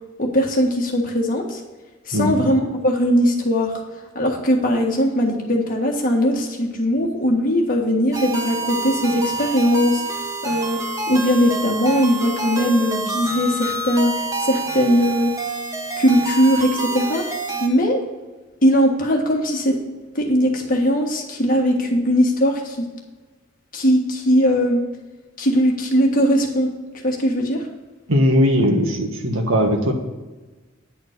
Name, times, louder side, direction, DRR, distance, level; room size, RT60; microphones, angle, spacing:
voice 1, 0.2-1.6 2.1-3.7 4.1-10.8 11.1-15.3 16.0-17.3 17.6-18.0 18.6-19.7 20.1-22.8 23.7-24.8 25.4-26.7 27.0-27.7, equal, 45° left, 0 dB, 1.6 m, -19 dB
voice 2, 2.1-2.5 28.1-29.9, equal, 85° right, 3 dB, 1.6 m, -19 dB
sound 1, 8.1-17.7, right 3 dB, 15° right, 1.0 m, -27 dB
10.0 x 4.3 x 6.6 m, 1.2 s
head